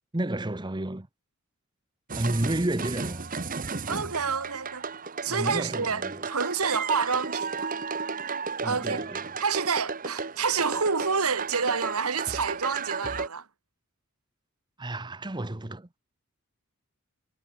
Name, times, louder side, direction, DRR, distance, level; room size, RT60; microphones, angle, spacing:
voice 1, 0.1-1.1 2.1-3.2 5.3-6.2 8.6-9.2 14.8-15.9, right 1 dB, 20° right, 0.9 m, -31 dB
sound 1, 2.1-13.3, right 4 dB, 40° right, 1.4 m, -34 dB
voice 2, 3.9-4.9 5.2-7.7 8.6-9.0 9.4-13.5, right 5 dB, 80° right, 1.8 m, -28 dB
head